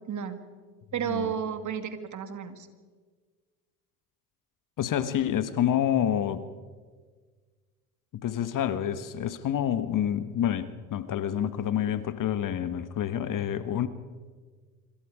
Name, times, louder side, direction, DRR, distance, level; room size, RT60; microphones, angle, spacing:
voice 1, 0.1-0.4 0.9-2.7, right 8 dB, 40° right, 2.4 m, -32 dB
voice 2, 4.8-6.5 8.1-13.9, left 10 dB, 45° left, 1.5 m, -28 dB
26.0 x 26.0 x 5.0 m
hypercardioid pair, 70°, 45 cm